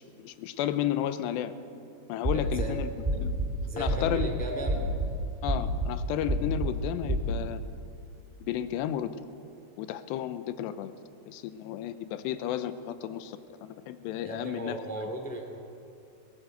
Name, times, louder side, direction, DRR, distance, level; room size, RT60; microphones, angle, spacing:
voice 1, 0.0-1.5 2.1-2.9 3.2-3.4 3.8-4.3 5.4-7.6 8.4-9.2 9.8-10.9 11.3-14.8, left 11 dB, 85° left, 12 dB, 3.0 m, -33 dB
sound 1, 2.2-2.7 3.0-3.5 3.9-4.3 4.7-5.1 5.5-5.9 6.3-6.7 7.1-7.3, right 1 dB, 20° right, 0.8 m, -28 dB
voice 2, 2.3-2.8 3.7-4.8 14.2-15.6, right 1 dB, 10° left, 2 dB, 0.5 m, -36 dB
19.0 x 18.0 x 7.9 m, 2.5 s
omnidirectional pair, 4.9 m